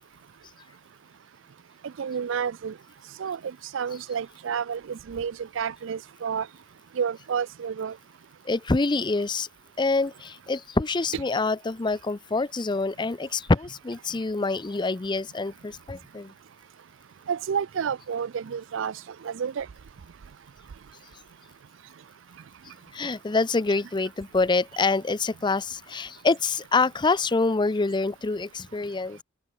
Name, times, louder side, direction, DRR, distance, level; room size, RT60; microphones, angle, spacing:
voice 1, 1.8-2.8 3.2-6.5 6.9-8.0 17.3-19.7, right 7 dB, 65° right, 0.4 m, -30 dB
voice 2, 8.5-9.5 9.8-16.3 22.9-29.2, left 3 dB, 20° left, 0.5 m, -26 dB
open air
head